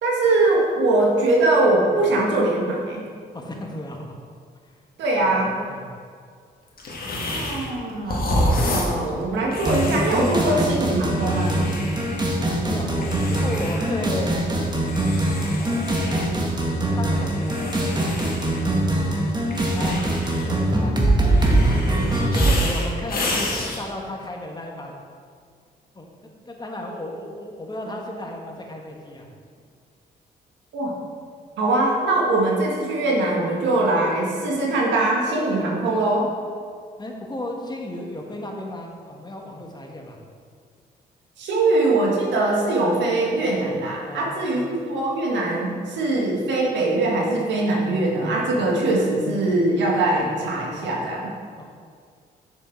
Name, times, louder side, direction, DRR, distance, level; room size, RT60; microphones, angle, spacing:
voice 1, 0.0-3.0 5.0-5.5 7.2-8.2 8.6-11.6 30.7-30.9 31.6-36.3 41.4-51.3, right 2 dB, 80° right, -1 dB, 1.7 m, -22 dB
voice 2, 3.3-4.2 4.6-4.7 5.2-5.4 5.7-5.9 7.0-8.0 12.6-14.3 15.6-16.2 17.0-19.3 19.7-20.1 20.4-21.5 21.9-25.0 25.9-29.3 37.0-40.2 44.0-44.7 51.6-51.7, left 1 dB, 20° left, 1 dB, 1.5 m, -35 dB
sound 1, 6.8-7.8 8.0-12.4 13.0-14.1 14.4-16.3 17.2-18.9 19.5-20.7 21.2-23.8, left 1 dB, 55° left, 1.8 m, -29 dB
sound 2, 9.6-22.6, right 1 dB, 25° right, 1.6 m, -22 dB
7.2 x 6.5 x 4.5 m, 2.1 s
supercardioid pair, 65°, 19 cm